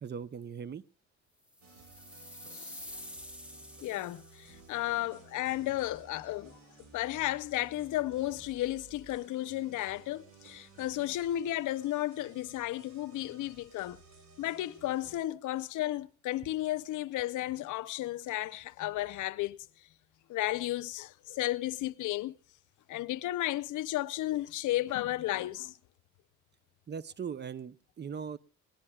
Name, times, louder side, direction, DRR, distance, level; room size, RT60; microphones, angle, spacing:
voice 1, 0.0-0.8 26.9-28.4, right 7 dB, 35° right, 0.6 m, -39 dB
sound 1, 1.5-4.7, left 1 dB, 5° right, 1.5 m, -48 dB
sound 2, 1.6-15.2, right 4 dB, 65° right, 7.0 m, -56 dB
voice 2, 2.5-2.8 3.8-6.6 6.9-14.0 14.4-19.6 20.3-22.3 22.9-25.8, left 15 dB, 80° left, 0.7 m, -33 dB
21.5 x 18.5 x 2.3 m
cardioid pair, 90°, 30 cm